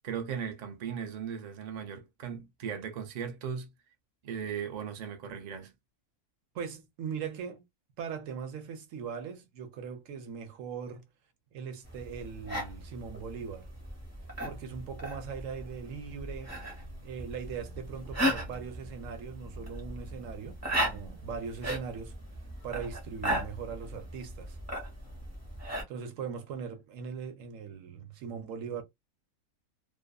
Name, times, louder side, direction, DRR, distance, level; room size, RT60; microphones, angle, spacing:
voice 1, 0.0-3.7 4.2-5.7, right 7 dB, 90° right, 0.3 m, -37 dB
voice 2, 6.5-7.7 8.0-11.0 11.5-13.7 14.4-16.6 17.0-22.2 22.6-24.6 25.9-28.8, right 6 dB, 65° right, 0.9 m, -40 dB
sound 1, 11.8-25.8, equal, 10° right, 0.9 m, -37 dB
2.5 x 2.5 x 2.2 m
omnidirectional pair, 1.6 m